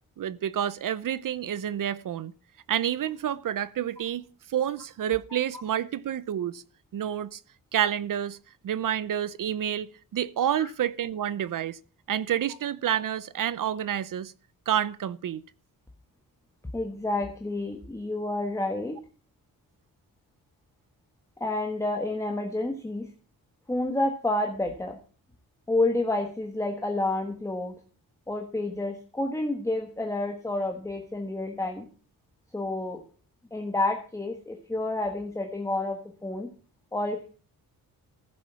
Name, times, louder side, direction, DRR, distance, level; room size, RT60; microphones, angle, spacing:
voice 1, 0.2-2.3 2.7-4.2 4.5-6.6 6.9-7.4 7.7-8.4 8.6-11.8 12.1-14.3 14.7-15.4, right 10 dB, 60° right, 0.7 m, -29 dB
voice 2, 16.7-19.0 21.4-23.1 23.7-25.0 25.7-27.7 28.3-31.9 32.5-33.0 33.5-36.5 36.9-37.3, left 2 dB, 10° left, 1.4 m, -29 dB
15.0 x 7.6 x 5.6 m
wide cardioid pair, 170°, 36 cm